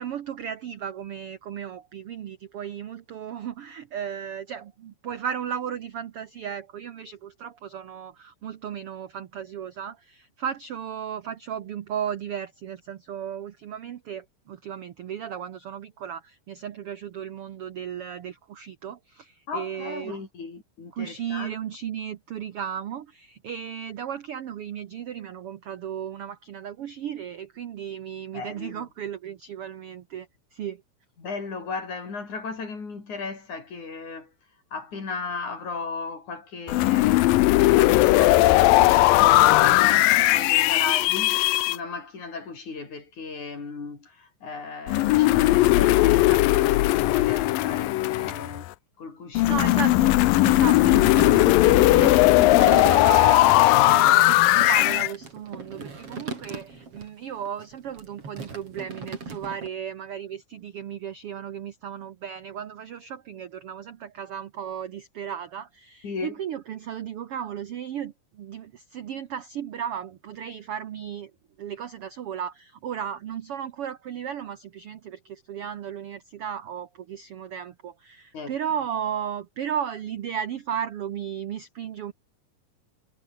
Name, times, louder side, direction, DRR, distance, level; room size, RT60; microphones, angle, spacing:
voice 1, 0.0-20.2 20.9-30.8 49.5-71.3 71.6-82.1, right 9 dB, 70° right, 1.3 m, -35 dB
voice 2, 19.5-21.5 28.3-28.9 31.2-34.3 34.7-37.4 37.7-48.7 49.0-49.6 66.0-66.3 78.3-78.6, left 4 dB, 55° left, 6.8 m, -36 dB
sound 1, 36.7-41.8 44.9-48.7 49.4-55.1, left 17 dB, 80° left, 2.5 m, -18 dB
sound 2, 49.3-57.1 57.4-59.7, right 4 dB, 40° right, 5.3 m, -38 dB
omnidirectional pair, 4.1 m